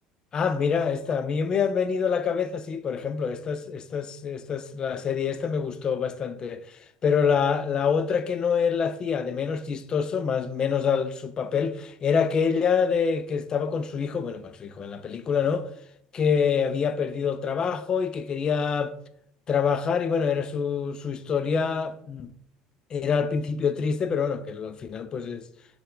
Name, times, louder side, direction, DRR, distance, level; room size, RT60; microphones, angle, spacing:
voice 1, 0.3-6.6 7.0-15.7 16.1-18.9 19.5-22.3 22.9-25.4, left 6 dB, 35° left, 0.3 m, -26 dB
4.2 x 2.2 x 3.8 m
supercardioid pair, 105°, 2 cm